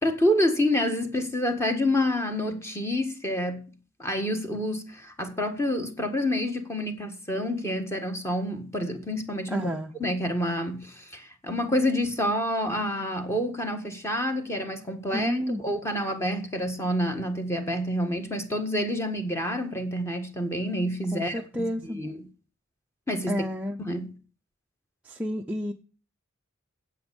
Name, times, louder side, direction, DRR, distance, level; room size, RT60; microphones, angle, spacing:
voice 1, 0.0-3.6 4.0-9.7 10.0-21.7 22.0-22.1 23.1-23.4 23.8-24.1, left 1 dB, 15° left, 1.6 m, -28 dB
voice 2, 9.5-9.9 15.1-15.6 21.1-22.0 23.3-23.8 25.0-25.7, left 1 dB, 5° right, 0.6 m, -30 dB
9.3 x 8.3 x 7.0 m
head